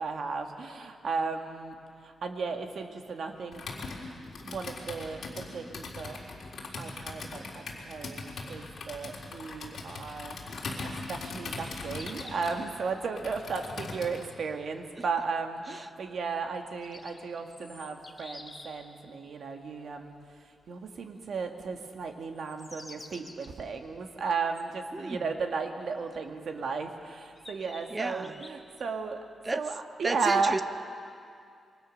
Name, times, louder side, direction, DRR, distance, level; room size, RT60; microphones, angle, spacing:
voice 1, 0.0-1.8 2.0-4.0 4.4-6.2 6.8-10.4 10.8-20.2 20.7-29.2 29.5-30.6, right 4 dB, 60° right, 4 dB, 1.9 m, -34 dB
Computer keyboard, 3.5-14.3, left 3 dB, 55° left, 3.9 m, -40 dB
sound 1, 11.5-12.7 16.5-18.9 22.3-23.5 24.5-24.6 26.4-26.5 27.3-28.8, left 2 dB, 15° left, 1.9 m, -49 dB
voice 2, 24.9-25.3 27.9-28.4 29.4-29.6 30.0-30.6, right 2 dB, 20° right, 11 dB, 0.7 m, -32 dB
27.0 x 23.0 x 6.5 m, 2.4 s
wide cardioid pair, 155°, 0 cm